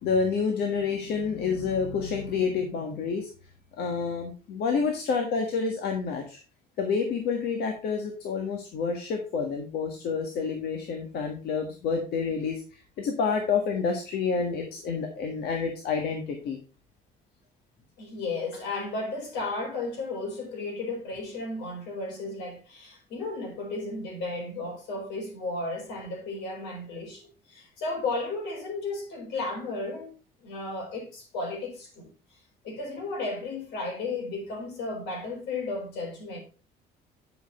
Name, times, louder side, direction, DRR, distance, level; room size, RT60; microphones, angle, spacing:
voice 1, 0.0-3.3 3.8-6.4 6.8-16.6, left 5 dB, 70° left, 1.6 m, -28 dB
voice 2, 18.0-30.1 30.4-32.1 32.6-36.4, left 3 dB, 85° left, 4.3 m, -34 dB
10.0 x 5.9 x 4.3 m
cardioid pair, 110°, 17 cm